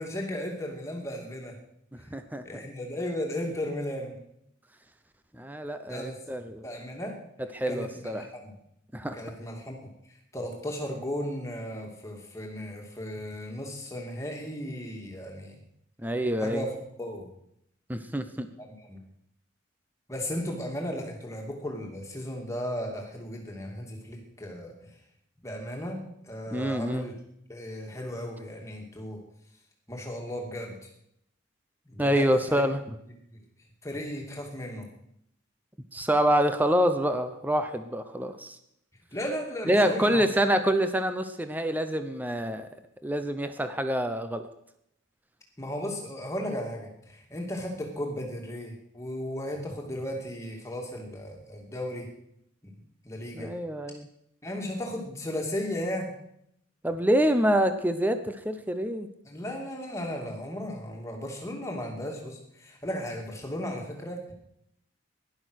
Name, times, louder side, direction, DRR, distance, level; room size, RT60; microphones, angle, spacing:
voice 1, 0.0-1.5 2.4-4.1 5.8-6.2 6.6-7.1 7.7-8.5 9.1-9.8 10.3-15.6 16.4-16.7 17.0-17.3 18.6-19.0 20.1-24.7 25.4-27.1 27.5-29.2 29.9-30.8 31.9-32.6 33.3-33.4 33.8-34.9 39.1-40.3 45.6-52.1 52.6-52.8 53.0-53.5 54.4-56.1 59.2-64.3, left 1 dB, 15° left, 0 dB, 2.6 m, -35 dB
voice 2, 2.1-2.6 5.3-6.7 7.5-8.2 8.9-9.2 16.0-16.6 17.9-18.5 26.5-27.1 32.0-32.8 35.9-38.6 39.7-42.7 43.0-44.4 53.3-54.1 56.8-59.1, equal, 10° right, 9 dB, 0.8 m, -26 dB
16.5 x 11.5 x 6.4 m, 0.76 s
head